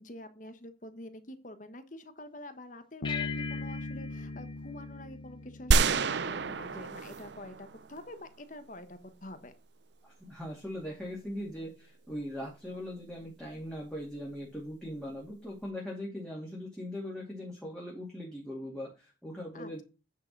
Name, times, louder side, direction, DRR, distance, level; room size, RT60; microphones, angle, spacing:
voice 1, 0.0-9.5 19.5-19.8, left 1 dB, 45° left, 10 dB, 1.2 m, -47 dB
Bass guitar, 3.0-6.6, left 2 dB, 75° left, 0.6 m, -40 dB
sound 1, 3.0-5.8, left 8 dB, 25° left, 0.9 m, -42 dB
sound 2, 5.7-8.0, right 4 dB, 65° right, 0.6 m, -28 dB
voice 2, 10.0-19.8, left 1 dB, 5° left, -4 dB, 2.4 m, -40 dB
9.8 x 5.2 x 5.3 m, 0.30 s
head